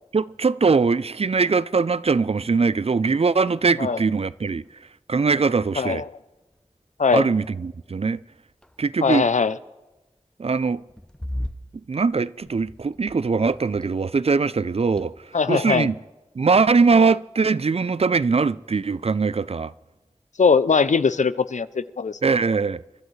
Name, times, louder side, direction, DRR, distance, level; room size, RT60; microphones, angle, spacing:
voice 1, 0.1-4.6 5.1-6.0 7.1-8.2 8.8-9.2 10.4-10.8 11.9-15.1 15.5-15.9 16.4-19.7 22.2-22.8, right 4 dB, 55° right, 0.4 m, -21 dB
sound 1, 4.2-5.7 6.5-6.9 7.2-7.5 8.3-9.2 10.6-14.2 14.5-15.5, left 1 dB, 5° left, 0.7 m, -39 dB
voice 2, 9.0-9.6 15.3-15.9 20.4-22.2, left 5 dB, 85° left, 0.5 m, -20 dB
28.5 x 12.0 x 3.2 m
wide cardioid pair, 40°, 12 cm